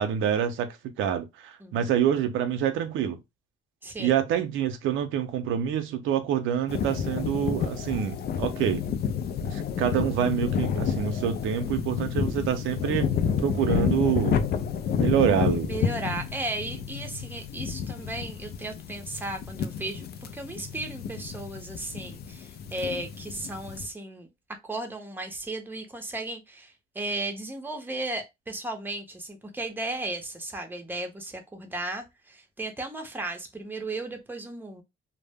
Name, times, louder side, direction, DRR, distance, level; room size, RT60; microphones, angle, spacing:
voice 1, 0.0-3.2 4.0-8.8 9.4-14.4 15.0-15.7, right 9 dB, 90° right, 0.5 m, -26 dB
sound 1, 6.7-23.9, left 7 dB, 55° left, 0.4 m, -30 dB
voice 2, 15.6-24.3 24.6-34.8, right 2 dB, 10° right, 0.7 m, -35 dB
2.0 x 2.0 x 3.3 m
cardioid pair, 90°, 20 cm